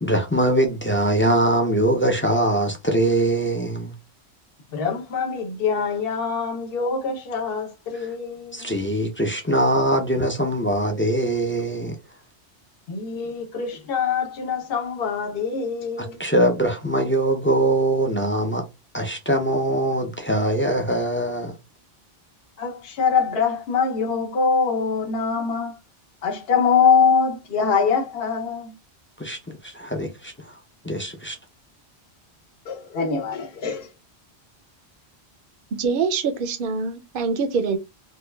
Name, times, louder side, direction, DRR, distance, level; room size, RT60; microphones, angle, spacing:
voice 1, 0.0-3.9 7.9-8.1 8.5-12.0 16.0-18.6 18.9-21.5 29.2-30.5 30.8-31.4, right 1 dB, 15° left, 0.4 m, -22 dB
voice 2, 4.7-8.7 12.9-16.2 22.6-25.7 26.2-28.7 32.7-33.9, left 6 dB, 65° left, 0.9 m, -23 dB
voice 3, 35.8-37.8, right 5 dB, 60° right, 0.7 m, -24 dB
4.6 x 2.3 x 2.2 m
omnidirectional pair, 1.1 m